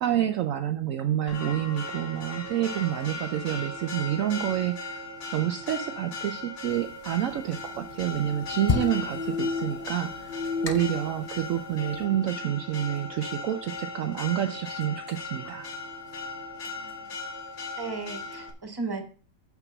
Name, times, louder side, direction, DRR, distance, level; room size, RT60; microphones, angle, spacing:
voice 1, 0.0-5.0 5.3-15.7, right 11 dB, 75° right, 9 dB, 0.7 m, -28 dB
Church bell, 1.3-18.5, left 2 dB, 45° left, 1.3 m, -38 dB
sound 1, 6.7-12.0, left 5 dB, 85° left, 0.3 m, -31 dB
voice 2, 16.6-17.2 17.8-19.0, right 3 dB, 15° right, 5 dB, 1.1 m, -36 dB
6.8 x 5.9 x 5.9 m, 0.40 s
omnidirectional pair, 1.9 m